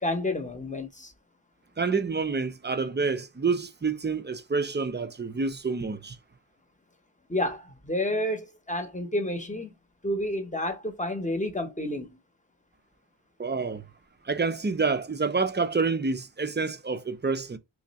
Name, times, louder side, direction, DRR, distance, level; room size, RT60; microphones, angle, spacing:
voice 1, 0.0-1.1 7.3-9.8 10.0-12.2, left 1 dB, 15° left, 0.8 m, -30 dB
voice 2, 1.8-6.2 13.4-13.8 14.3-17.6, right 4 dB, 25° right, 0.4 m, -28 dB
3.1 x 2.5 x 4.0 m
wide cardioid pair, 60°, 48 cm